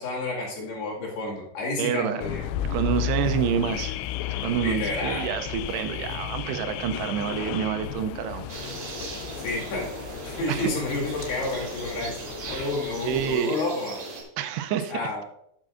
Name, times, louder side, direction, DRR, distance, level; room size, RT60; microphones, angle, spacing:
voice 1, 0.0-2.5 4.6-5.3 9.4-9.9 10.2-14.0 14.9-15.2, left 2 dB, 70° left, -3 dB, 4.0 m, -30 dB
voice 2, 1.8-2.2 2.7-4.0 4.4-8.7 10.5-10.7 12.4-12.7 13.0-13.6 14.4-14.9, right 9 dB, 80° right, 9 dB, 2.6 m, -28 dB
Car / Alarm, 2.2-13.4, left 11 dB, 90° left, 2.8 m, -34 dB
sound 1, 8.5-14.2, right 2 dB, 55° right, 3.5 m, -38 dB
12.0 x 8.5 x 2.5 m, 0.76 s
omnidirectional pair, 4.9 m